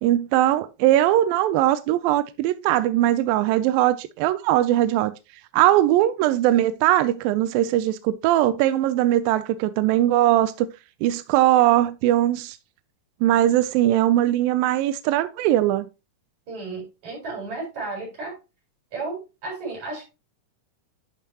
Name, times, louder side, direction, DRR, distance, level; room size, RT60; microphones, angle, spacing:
voice 1, 0.0-5.1 5.5-10.7 11.0-12.6 13.2-15.9, right 13 dB, 85° right, 2.0 m, -20 dB
voice 2, 16.5-18.3 18.9-20.1, right 3 dB, 45° right, 5.9 m, -33 dB
11.0 x 5.6 x 2.8 m
omnidirectional pair, 4.5 m